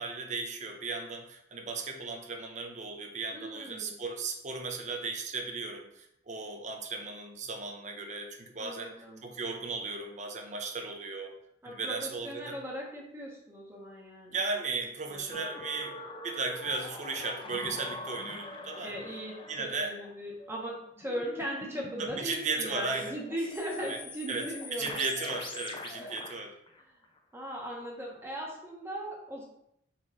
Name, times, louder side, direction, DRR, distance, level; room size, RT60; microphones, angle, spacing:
voice 1, 0.0-8.9 9.2-11.4 11.6-12.6 14.3-16.0 16.2-18.9 19.5-20.0 22.0-23.1 23.9-24.0 24.3-26.5, right 3 dB, 40° right, 4 dB, 0.6 m, -36 dB
voice 2, 3.3-3.9 8.6-9.3 11.6-14.4 15.1-15.4 18.8-25.0 26.0-26.1 26.9-27.0 27.3-29.5, equal, 15° right, -3 dB, 0.9 m, -39 dB
sound 1, 15.3-22.2 22.9-27.4 27.8-27.9, left 2 dB, 25° left, 0.3 m, -44 dB
4.2 x 3.0 x 3.8 m, 0.74 s
head